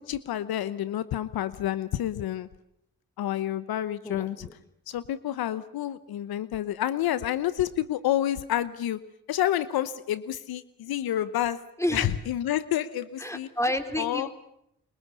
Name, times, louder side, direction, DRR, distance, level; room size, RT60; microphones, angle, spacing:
voice 1, 0.0-2.5 3.2-4.5 4.9-9.0 9.3-11.6 11.9-13.5 14.0-14.3, left 12 dB, 80° left, 16 dB, 1.0 m, -29 dB
voice 2, 4.0-4.5 11.8-12.1 13.2-14.3, left 1 dB, 10° left, 8 dB, 4.1 m, -30 dB
24.5 x 23.5 x 8.3 m, 0.77 s
supercardioid pair, 40°, 36 cm